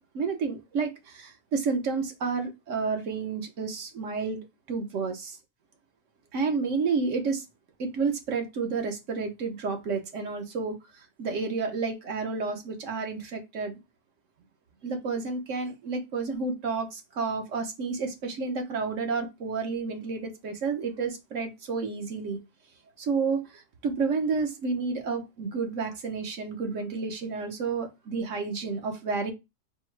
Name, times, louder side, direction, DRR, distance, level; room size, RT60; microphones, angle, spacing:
voice 1, 0.1-4.4 4.7-5.4 6.3-7.4 7.8-10.7 11.2-13.8 14.8-22.4 23.0-29.3, right 4 dB, 80° right, 1.2 m, -30 dB
4.3 x 2.0 x 4.5 m
omnidirectional pair, 1.3 m